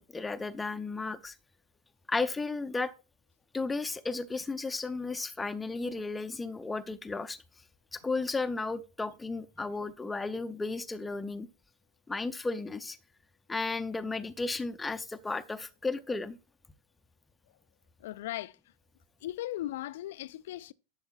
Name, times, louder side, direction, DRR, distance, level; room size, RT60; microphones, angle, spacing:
voice 1, 0.0-1.3 2.1-2.9 3.5-7.4 7.9-11.5 12.1-13.0 13.5-16.4, left 3 dB, 10° left, 0.6 m, -34 dB
voice 2, 18.0-18.6 19.2-20.7, left 14 dB, 55° left, 0.4 m, -37 dB
11.5 x 7.0 x 2.4 m
figure-of-eight pair, 90°, 0 cm